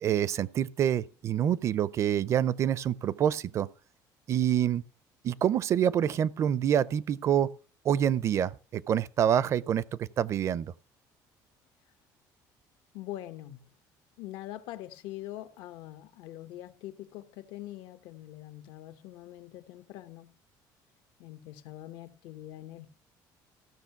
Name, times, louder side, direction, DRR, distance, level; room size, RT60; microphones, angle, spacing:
voice 1, 0.0-3.7 4.3-4.8 5.2-7.5 7.8-10.7, right 9 dB, 40° right, 0.4 m, -27 dB
voice 2, 12.9-13.7 14.2-20.3 21.2-22.9, left 14 dB, 85° left, 1.0 m, -43 dB
15.0 x 6.4 x 5.8 m
cardioid pair, 160°, 8 cm